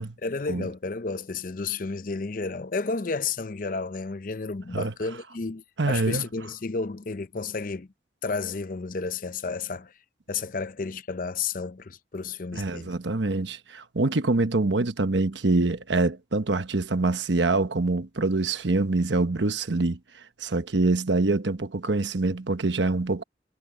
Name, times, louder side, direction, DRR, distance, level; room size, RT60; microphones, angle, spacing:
voice 1, 0.2-7.9 8.2-9.9 10.3-13.0, left 4 dB, 45° left, 0.6 m, -32 dB
voice 2, 5.8-6.2 12.5-20.0 20.4-23.2, right 3 dB, 75° right, 1.1 m, -25 dB
head